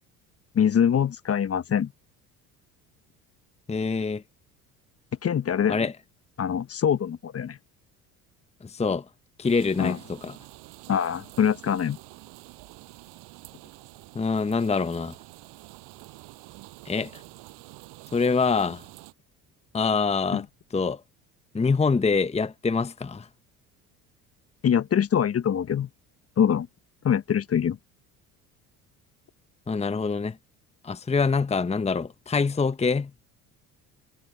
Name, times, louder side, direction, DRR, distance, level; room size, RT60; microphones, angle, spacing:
voice 1, 0.5-1.9 5.2-5.9 6.4-7.6 9.8-10.0 10.9-12.0 20.3-20.4 24.6-25.9 26.4-26.7 27.0-27.8, left 8 dB, 30° left, 1.3 m, -24 dB
voice 2, 3.7-4.2 5.7-5.9 8.6-9.0 9.4-10.4 14.1-15.1 16.8-17.2 18.1-18.8 19.7-20.4 20.7-21.0 21.5-23.3 29.7-30.4 30.8-33.1, left 4 dB, 15° left, 1.1 m, -25 dB
sound 1, 9.4-19.1, right 24 dB, 65° right, 5.8 m, -48 dB
hypercardioid pair, 60°, 44 cm